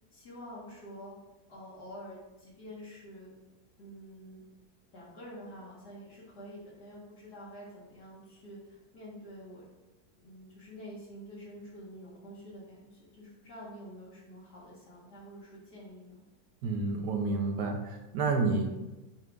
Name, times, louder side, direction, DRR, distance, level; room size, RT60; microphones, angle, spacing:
voice 1, 0.1-1.1 1.5-3.4 3.8-4.4 4.9-9.7 10.2-16.2, equal, 75° left, -8 dB, 2.3 m, -48 dB
voice 2, 16.6-18.7, right 3 dB, 80° right, 2 dB, 1.5 m, -29 dB
6.9 x 5.3 x 3.5 m, 1.0 s
omnidirectional pair, 1.8 m